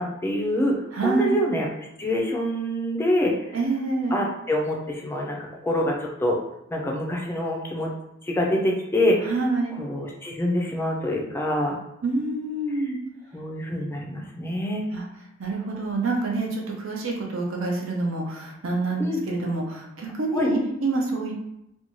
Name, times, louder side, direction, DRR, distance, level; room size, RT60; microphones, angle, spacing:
voice 1, 0.0-3.3 4.1-5.4 5.6-6.4 6.7-7.9 8.2-9.3 9.8-11.8 13.3-14.9 19.0-19.2 20.3-20.5, left 1 dB, 10° left, -1 dB, 0.4 m, -25 dB
voice 2, 0.9-1.3 3.5-4.2 9.3-9.7 12.0-13.0 14.9-15.0 15.4-21.3, right 3 dB, 75° right, -1 dB, 0.6 m, -27 dB
2.6 x 2.2 x 3.0 m, 0.83 s
head